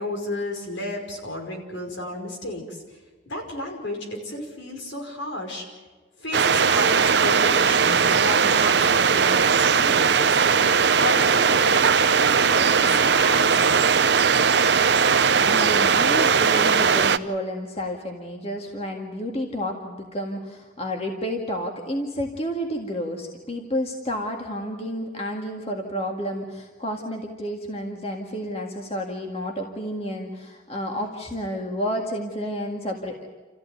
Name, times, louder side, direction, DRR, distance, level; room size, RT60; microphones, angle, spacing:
voice 1, 0.0-2.8 3.3-5.7 6.2-10.4 11.0-14.0, left 1 dB, 75° left, 2 dB, 5.5 m, -33 dB
sound 1, 6.3-17.2, right 6 dB, 60° right, 0.8 m, -19 dB
voice 2, 15.4-33.2, equal, 30° left, 2 dB, 1.9 m, -30 dB
28.5 x 15.0 x 9.3 m, 1.3 s
head